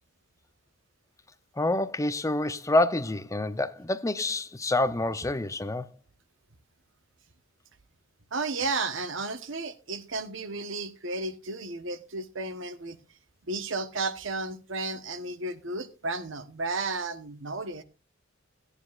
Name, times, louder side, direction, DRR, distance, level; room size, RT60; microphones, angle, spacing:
voice 1, 1.6-5.9, left 2 dB, 15° left, 0.5 m, -27 dB
voice 2, 8.3-13.0 13.5-17.8, right 3 dB, 65° right, 1.1 m, -33 dB
16.5 x 9.8 x 2.4 m
head